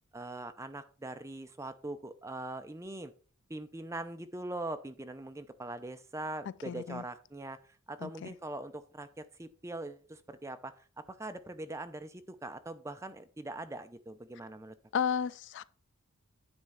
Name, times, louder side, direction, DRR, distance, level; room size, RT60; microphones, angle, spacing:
voice 1, 0.1-3.1 3.5-7.6 7.9-14.7, right 2 dB, 15° right, 0.5 m, -42 dB
voice 2, 6.7-7.0 8.0-8.1 14.9-15.6, left 7 dB, 55° left, 0.3 m, -32 dB
9.7 x 3.6 x 5.7 m
head